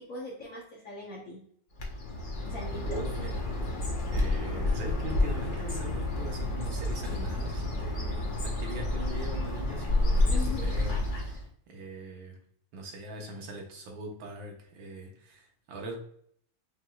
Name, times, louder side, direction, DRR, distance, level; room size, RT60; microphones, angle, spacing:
voice 1, 0.0-1.4 2.5-3.0 10.3-10.7, left 2 dB, 60° left, -2 dB, 0.9 m, -40 dB
Bird, 1.8-11.5, left 2 dB, 80° left, 0.4 m, -30 dB
voice 2, 2.8-3.4 4.1-12.4 12.7-16.0, right 1 dB, 75° right, 1 dB, 1.7 m, -42 dB
5.9 x 3.0 x 2.3 m, 0.64 s
omnidirectional pair, 2.2 m